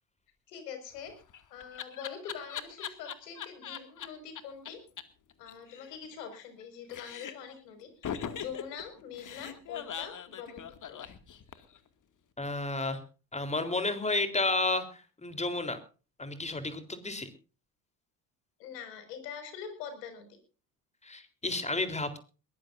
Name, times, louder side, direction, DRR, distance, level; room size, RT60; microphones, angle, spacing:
voice 1, 0.5-1.1 1.5-4.8 5.4-11.0 18.6-20.4, left 7 dB, 75° left, 8 dB, 5.8 m, -44 dB
Laughter, 1.0-4.1 4.4-4.5 4.7-4.8 5.0-5.1 5.3-6.6 6.9-7.5 8.0-11.8, left 8 dB, 40° left, 2.3 m, -40 dB
voice 2, 12.4-13.0 13.3-14.9 15.2-15.8 16.2-17.3 21.0-22.2, left 2 dB, 15° left, 9 dB, 3.8 m, -31 dB
22.0 x 18.5 x 2.6 m, 0.36 s
hypercardioid pair, 65°, 49 cm